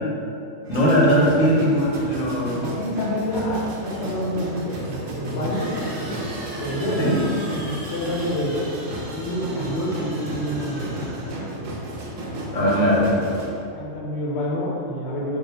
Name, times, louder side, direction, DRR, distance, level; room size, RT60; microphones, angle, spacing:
sound 1, 0.6-13.5, right 1 dB, 75° right, 1.0 m, -33 dB
voice 1, 0.7-2.5 7.0-7.1 12.5-13.0, equal, 90° left, -5 dB, 1.2 m, -19 dB
voice 2, 2.6-6.2 6.6-8.5 9.1-11.5 13.4-15.4, equal, 65° left, -3 dB, 0.9 m, -28 dB
sound 2, 5.5-11.6, right 1 dB, 55° right, 1.4 m, -40 dB
3.6 x 2.5 x 4.0 m, 2.7 s
omnidirectional pair, 1.3 m